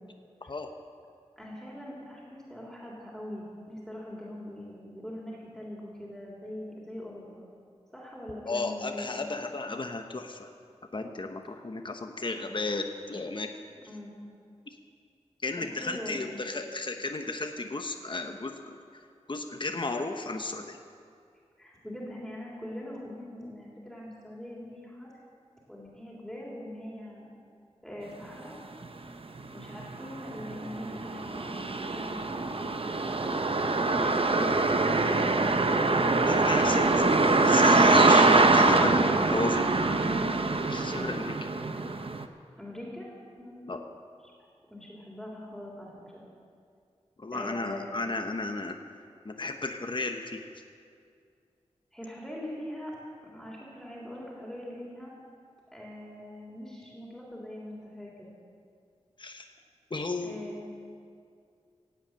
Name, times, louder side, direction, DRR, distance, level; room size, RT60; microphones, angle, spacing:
voice 1, 1.4-7.4 7.9-9.2 13.9-14.1 15.7-16.4 21.6-25.1 25.7-27.3 27.8-28.6 29.5-33.3 34.0-35.8 38.1-38.4 40.0-40.4 42.6-43.1 43.4-43.7 44.7-46.2 47.3-47.9 51.9-52.9 53.2-55.1 55.7-58.3 60.2-60.6, left 1 dB, 5° left, -4 dB, 3.3 m, -42 dB
voice 2, 8.4-10.5 10.9-13.5 15.4-18.8 19.3-20.8 36.3-39.0 39.3-39.7 40.7-41.3 43.7-43.8 47.2-48.8 49.2-50.4 59.2-59.5 59.9-60.4, left 3 dB, 45° left, 5 dB, 1.0 m, -33 dB
sound 1, 28.8-28.9 29.4-42.2, right 3 dB, 50° right, 0.9 m, -24 dB
17.0 x 8.1 x 8.9 m, 2.3 s
wide cardioid pair, 60°, 12 cm